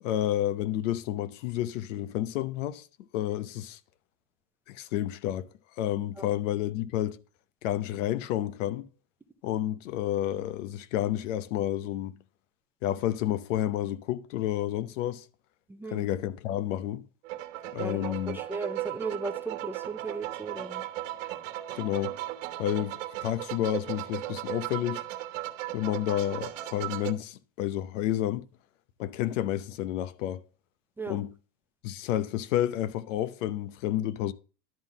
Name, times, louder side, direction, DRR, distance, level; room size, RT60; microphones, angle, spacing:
voice 1, 0.0-2.9 3.1-3.8 4.7-5.5 5.8-7.2 7.6-8.9 9.4-12.1 12.8-15.3 15.9-17.0 17.7-18.4 21.7-22.1 22.6-25.0 25.7-28.4 29.0-30.4 31.1-31.3 31.8-34.3, left 12 dB, 80° left, 0.9 m, -30 dB
voice 2, 15.7-16.0 17.8-20.8 31.0-31.2, right 3 dB, 5° right, 0.4 m, -36 dB
sound 1, 17.2-27.1, right 15 dB, 85° right, 1.2 m, -36 dB
11.0 x 3.9 x 7.2 m
supercardioid pair, 155°, 37 cm